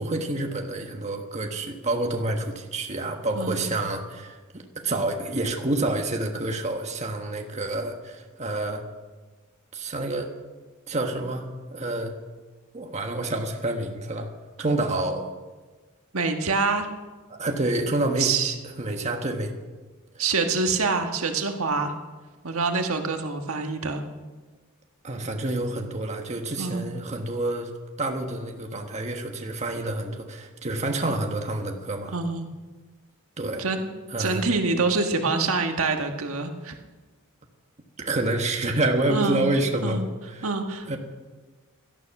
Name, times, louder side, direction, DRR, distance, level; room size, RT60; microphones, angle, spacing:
voice 1, 0.0-8.8 9.7-10.3 10.9-12.2 12.7-14.3 14.6-15.3 17.3-18.3 18.8-19.5 25.0-27.7 28.0-32.1 33.4-33.6 34.1-34.5 38.0-40.0 40.3-40.5 40.9-41.0, right 2 dB, 30° right, 3 dB, 1.4 m, -28 dB
voice 2, 3.4-3.7 16.1-16.9 18.2-18.5 20.2-21.9 22.4-24.0 26.6-26.9 32.1-32.5 33.6-33.9 34.2-36.8 39.1-39.5 39.8-40.0 40.4-41.0, right 4 dB, 75° right, 4 dB, 1.5 m, -26 dB
17.0 x 12.5 x 6.0 m, 1.3 s
head